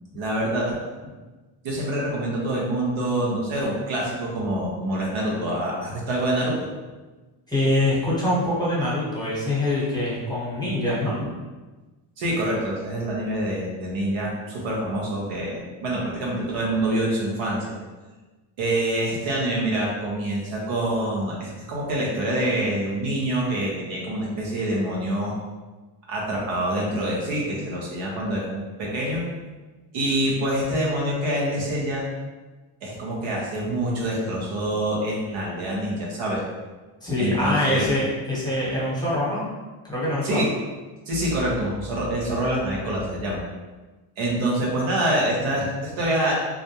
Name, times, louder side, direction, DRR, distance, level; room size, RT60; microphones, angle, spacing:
voice 1, 0.1-0.8 1.6-6.7 12.2-17.7 18.6-25.3 26.1-29.2 29.9-32.1 32.8-36.4 37.2-37.8 40.2-40.5 41.1-43.4 44.2-46.3, right 1 dB, 75° right, -4 dB, 0.9 m, -26 dB
voice 2, 7.5-11.3 37.0-39.4 39.8-40.4, left 1 dB, 10° left, -8 dB, 1.0 m, -24 dB
2.5 x 2.1 x 2.8 m, 1.2 s
cardioid pair, 80°, 47 cm